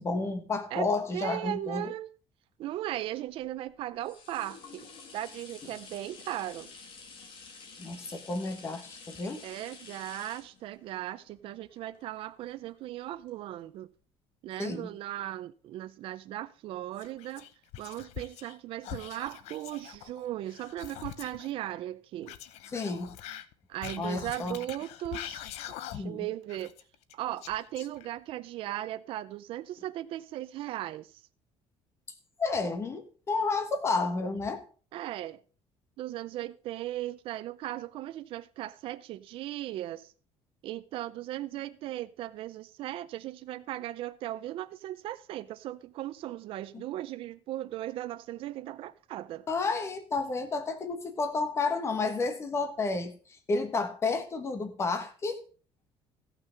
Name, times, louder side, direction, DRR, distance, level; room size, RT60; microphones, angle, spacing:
voice 1, 0.0-1.9 7.8-9.4 14.6-14.9 22.7-23.1 24.0-24.6 25.9-26.3 32.4-34.6 46.7-46.8 49.5-53.1 53.5-55.4, left 3 dB, 25° left, 1.4 m, -31 dB
voice 2, 1.1-2.1 2.6-4.9 5.1-6.7 9.4-13.9 14.4-17.5 17.8-22.4 23.7-25.4 25.9-26.7 27.1-31.1 34.9-35.4 36.0-40.1 40.6-49.5, right 14 dB, 55° right, 0.6 m, -37 dB
sound 1, 3.1-12.8 13.3-13.4, left 4 dB, 50° left, 2.2 m, -50 dB
Whispering, 17.0-18.6 18.8-21.5 22.2-26.2 26.5-28.3, left 12 dB, 80° left, 0.8 m, -44 dB
14.5 x 6.1 x 5.2 m
cardioid pair, 170°, 11 cm